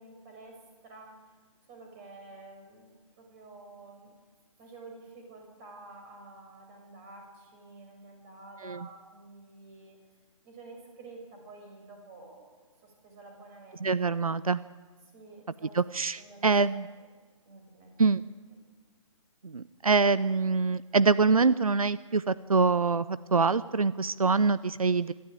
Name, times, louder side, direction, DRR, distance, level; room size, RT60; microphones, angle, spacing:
voice 1, 0.0-1.3 1.7-4.1 4.6-10.0 10.4-13.9 15.1-15.8 16.2-16.8 17.5-18.0, right 2 dB, 25° right, 3 dB, 6.2 m, -50 dB
voice 2, 13.8-14.6 15.7-16.9 18.0-18.2 19.4-25.1, right 4 dB, 90° right, 17 dB, 0.6 m, -25 dB
24.5 x 13.0 x 9.1 m, 1.4 s
figure-of-eight pair, 140°, 18 cm